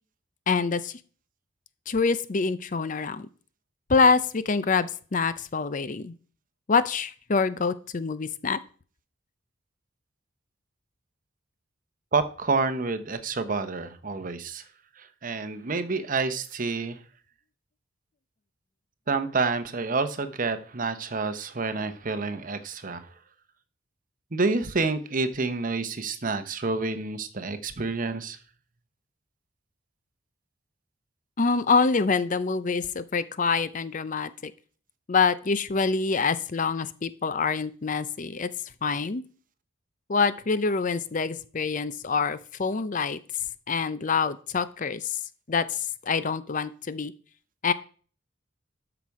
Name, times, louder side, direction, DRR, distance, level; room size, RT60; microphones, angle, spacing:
voice 1, 0.5-0.9 1.9-3.3 3.9-6.1 6.7-8.6 31.4-34.5 35.1-38.5 38.8-39.2 40.1-43.2 43.7-45.2 45.5-47.1 47.6-47.7, left 4 dB, 40° left, 15 dB, 0.6 m, -25 dB
voice 2, 12.1-14.6 15.0-17.0 19.1-23.0 24.3-28.4, right 3 dB, 45° right, 11 dB, 0.9 m, -28 dB
12.5 x 6.0 x 4.8 m, 0.42 s
head